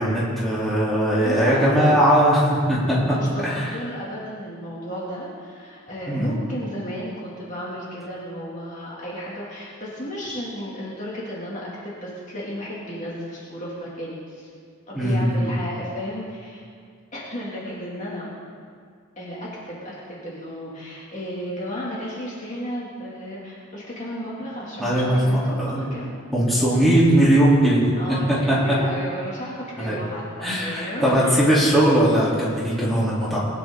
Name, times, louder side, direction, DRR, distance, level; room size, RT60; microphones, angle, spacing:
voice 1, 0.0-3.0 3.4-3.7 6.1-6.3 14.9-15.5 24.8-25.9 26.3-27.8 28.5-28.6 29.8-30.0 30.4-33.4, right 1 dB, ahead, -9 dB, 3.4 m, -19 dB
voice 2, 1.2-2.0 3.0-14.5 14.9-16.6 17.1-18.3 19.2-26.1 26.5-26.6 28.0-31.4, equal, 35° left, -6 dB, 2.5 m, -33 dB
21.0 x 10.0 x 3.8 m, 2.1 s
head